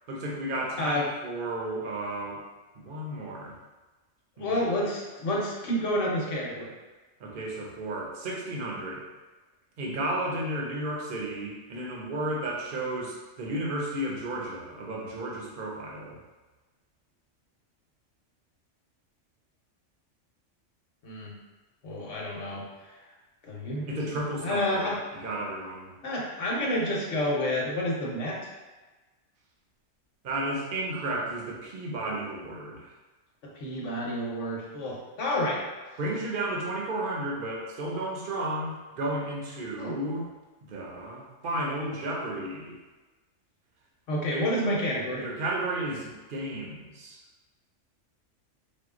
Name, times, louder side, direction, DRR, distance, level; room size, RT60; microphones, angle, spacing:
voice 1, 0.1-2.4 2.8-3.6 4.4-4.7 7.2-9.0 9.8-16.2 23.9-25.9 30.2-32.9 36.0-40.2 40.6-42.8 44.3-44.4 45.1-47.2, right 1 dB, 50° right, -2 dB, 0.9 m, -33 dB
voice 2, 0.8-1.1 4.4-6.7 21.0-21.3 21.8-22.9 23.4-24.0 24.4-25.0 26.0-28.4 33.4-35.6 39.8-40.0 44.1-45.3, left 1 dB, 75° left, -3 dB, 1.3 m, -29 dB
4.6 x 2.2 x 3.6 m, 1.2 s
omnidirectional pair, 1.3 m